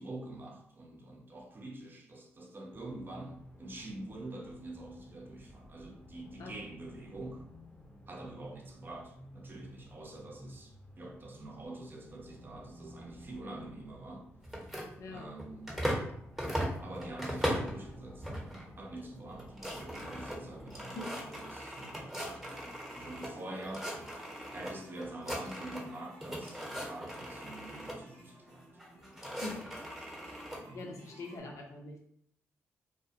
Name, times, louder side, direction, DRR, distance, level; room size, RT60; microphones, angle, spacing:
voice 1, 0.0-7.4 8.1-14.3 15.1-15.8 16.8-23.9 24.5-28.7 30.6-30.9, right 2 dB, 35° right, 1 dB, 0.6 m, -46 dB
sound 1, 2.7-20.8, equal, 20° left, 0.7 m, -53 dB
sound 2, 14.4-16.1 16.4-17.8 18.2-18.7 19.0-19.1 19.3-23.3 23.6-24.7 25.0-25.9 26.2-28.0 28.8-30.6, equal, 5° right, 0.9 m, -38 dB
sound 3, 22.4-31.4, equal, 85° right, 0.6 m, -56 dB
voice 2, 30.7-32.0, left 3 dB, 60° left, 0 dB, 0.7 m, -43 dB
2.2 x 2.1 x 2.7 m, 0.67 s
hypercardioid pair, 45°, 6 cm